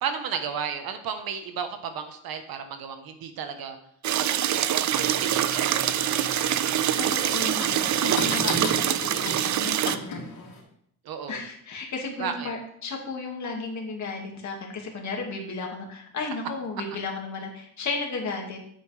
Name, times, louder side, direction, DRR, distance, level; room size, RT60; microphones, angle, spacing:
voice 1, 0.0-3.8 4.2-5.0 5.3-6.6 9.9-10.2 11.0-11.4 12.2-12.5, right 7 dB, 85° right, 7 dB, 1.3 m, -34 dB
sound 1, 4.0-10.0, right 11 dB, 55° right, 0.5 m, -25 dB
sound 2, 4.9-10.6, left 2 dB, 75° left, 3.1 m, -36 dB
voice 2, 6.9-10.5 11.3-18.6, left 3 dB, 55° left, 0 dB, 2.2 m, -34 dB
9.4 x 8.2 x 3.4 m, 0.70 s
cardioid pair, 125°, 35 cm